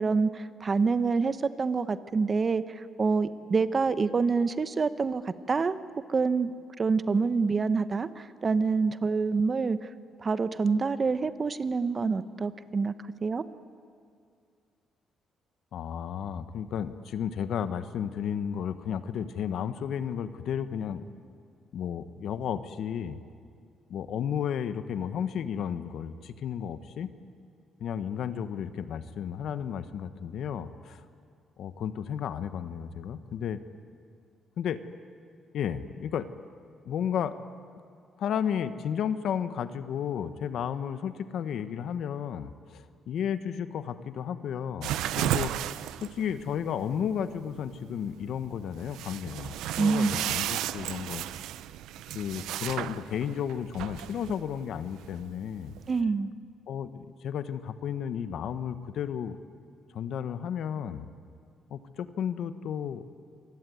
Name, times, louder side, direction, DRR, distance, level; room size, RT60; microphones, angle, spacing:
voice 1, 0.0-5.7 6.1-6.5 6.8-9.8 10.2-12.9 13.2-13.4 49.8-50.1 55.9-56.3, right 4 dB, 35° right, 12 dB, 1.1 m, -26 dB
voice 2, 15.7-21.0 21.7-23.2 23.9-27.1 27.8-31.0 31.6-33.6 34.6-34.8 35.5-36.3 36.8-37.3 38.2-45.5 46.0-51.2 52.1-55.7 56.7-59.4 59.9-61.1 61.7-63.0, left 8 dB, 70° left, 11 dB, 1.3 m, -33 dB
sound 1, 44.8-56.0, right 13 dB, 90° right, 0.7 m, -35 dB
26.5 x 20.0 x 9.4 m, 2.3 s
cardioid pair, 90°, 0 cm